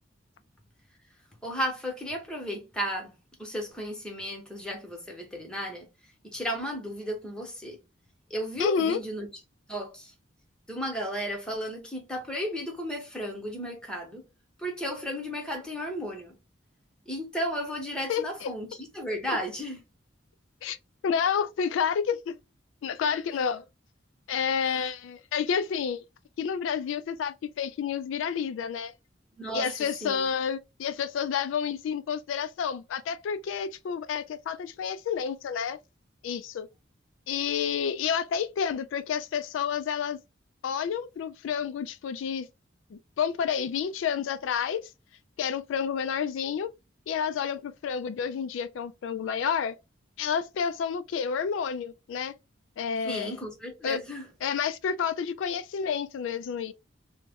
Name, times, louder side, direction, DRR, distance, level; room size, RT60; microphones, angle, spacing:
voice 1, 1.4-3.1 3.4-5.9 6.2-7.8 8.3-9.3 9.7-10.1 10.7-14.2 14.6-16.3 17.1-19.8 24.6-24.8 29.4-29.7 30.0-30.2 53.0-54.2, equal, 5° left, 0.9 m, -34 dB
voice 2, 8.6-9.0 18.1-18.5 19.3-19.4 20.6-20.8 21.0-22.4 22.8-23.6 24.3-26.0 26.4-28.9 29.5-35.8 36.2-36.7 37.3-40.2 40.6-42.5 42.9-44.9 45.4-46.7 47.1-49.7 50.2-52.3 52.8-53.3 53.8-54.0 54.4-56.7, left 7 dB, 80° left, 0.3 m, -29 dB
2.9 x 2.1 x 3.5 m
head